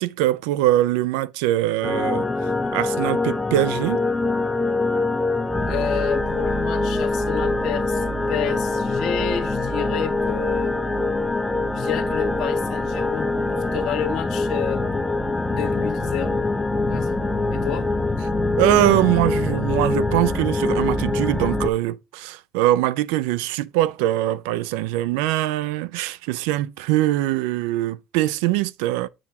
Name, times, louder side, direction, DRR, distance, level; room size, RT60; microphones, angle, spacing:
voice 1, 0.0-2.3 2.7-4.0 18.6-29.1, right 15 dB, 85° right, 0.4 m, -22 dB
sound 1, 1.8-21.7, left 2 dB, 10° left, 0.6 m, -24 dB
voice 2, 5.7-10.8 11.7-14.8 15.5-16.5 16.8-17.2 17.5-17.9, left 9 dB, 60° left, 1.4 m, -30 dB
7.6 x 6.8 x 2.8 m
supercardioid pair, 105°, 0 cm